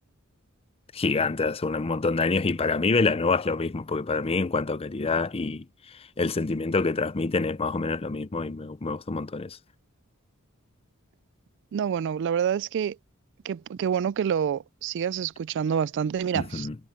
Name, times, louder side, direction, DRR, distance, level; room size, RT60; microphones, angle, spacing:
voice 1, 0.9-9.6 16.3-16.8, left 3 dB, 25° left, 0.5 m, -27 dB
voice 2, 11.7-13.0 13.4-16.7, right 8 dB, 55° right, 0.3 m, -27 dB
head